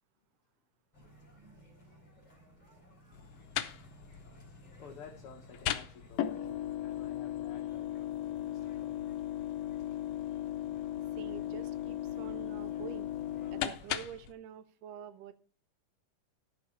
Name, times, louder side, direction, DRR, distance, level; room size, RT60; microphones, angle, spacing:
sound 1, 0.9-14.1, equal, 10° left, 3.5 m, -59 dB
sound 2, 3.1-14.3, left 12 dB, 85° left, 1.4 m, -37 dB
voice 1, 4.8-9.1, left 6 dB, 60° left, 1.6 m, -54 dB
voice 2, 11.2-13.2 13.5-15.3, right 8 dB, 80° right, 2.3 m, -47 dB
13.0 x 5.5 x 5.6 m
omnidirectional pair, 3.8 m